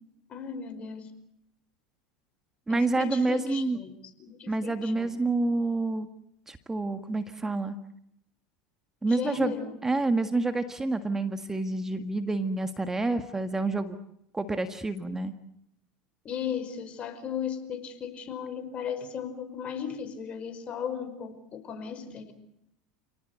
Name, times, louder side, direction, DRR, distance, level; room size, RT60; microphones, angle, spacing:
voice 1, 0.3-1.1 2.7-3.9 4.2-5.1 9.0-9.7 16.3-22.3, left 7 dB, 40° left, 9 dB, 5.2 m, -36 dB
voice 2, 2.7-3.8 4.5-6.1 6.5-7.7 9.0-9.5 9.8-14.0 14.3-15.3, right 2 dB, 15° right, 9 dB, 1.7 m, -28 dB
29.5 x 18.5 x 8.2 m, 0.75 s
hypercardioid pair, 90°, 3 cm